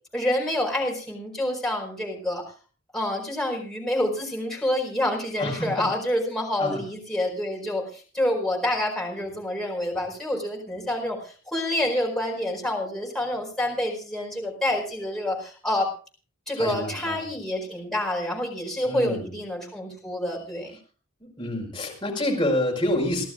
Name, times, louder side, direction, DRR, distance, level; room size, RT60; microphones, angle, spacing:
voice 1, 0.1-2.5 2.9-15.9 16.5-20.7, left 1 dB, ahead, -1 dB, 4.6 m, -27 dB
voice 2, 5.4-5.9 6.6-6.8 16.6-17.2 18.8-19.3 21.4-23.3, left 1 dB, 20° left, 0 dB, 5.2 m, -27 dB
30.0 x 12.5 x 2.5 m, 0.37 s
head